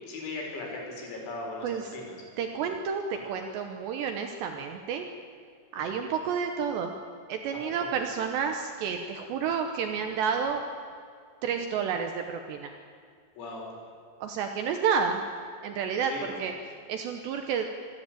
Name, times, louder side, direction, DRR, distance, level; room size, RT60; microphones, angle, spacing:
voice 1, 0.0-2.2 3.1-3.2 13.4-13.6 16.1-16.4, left 2 dB, 80° left, 0 dB, 7.2 m, -38 dB
voice 2, 1.6-2.0 2.4-5.1 5.7-6.9 7.3-10.6 11.4-12.7 14.2-15.2 15.6-16.5 16.9-17.7, right 6 dB, 75° right, 5 dB, 2.6 m, -30 dB
26.0 x 13.0 x 9.1 m, 2.2 s
omnidirectional pair, 6.0 m